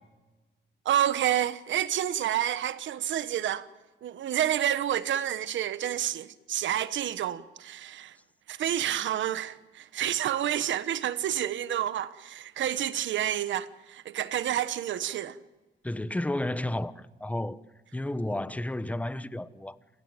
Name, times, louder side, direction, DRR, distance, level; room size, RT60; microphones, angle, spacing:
voice 1, 0.8-3.7 4.0-8.2 8.5-15.4, right 11 dB, 70° right, 1.2 m, -29 dB
voice 2, 15.8-17.6 17.9-19.8, left 1 dB, 5° left, 1.0 m, -32 dB
28.5 x 16.5 x 9.0 m
cardioid pair, 90°, 20 cm